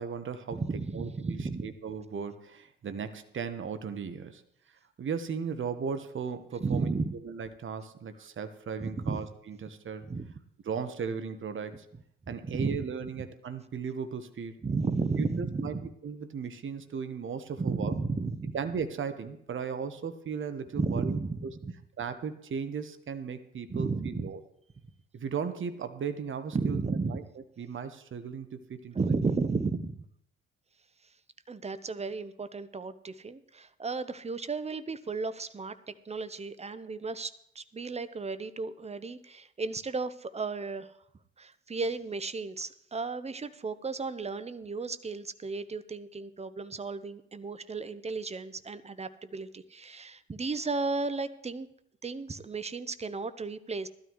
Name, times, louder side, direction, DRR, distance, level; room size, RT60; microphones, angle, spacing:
voice 1, 0.0-0.6 0.9-4.4 5.0-6.9 7.2-10.1 10.6-11.9 12.3-14.6 15.2-15.8 16.0-17.9 18.5-21.2 22.0-24.4 25.1-27.2 27.6-29.0, right 6 dB, 35° right, 10 dB, 1.1 m, -36 dB
voice 2, 0.5-1.7 6.6-7.1 8.8-9.2 10.0-10.3 12.4-12.8 14.6-15.9 17.6-18.6 20.7-21.7 23.7-24.3 26.5-27.2 28.9-30.0 31.5-35.8 36.0-40.9 41.4-51.7 52.0-53.9, right 4 dB, 20° right, 13 dB, 0.9 m, -33 dB
16.5 x 12.5 x 3.1 m, 0.73 s
hypercardioid pair, 50°, 33 cm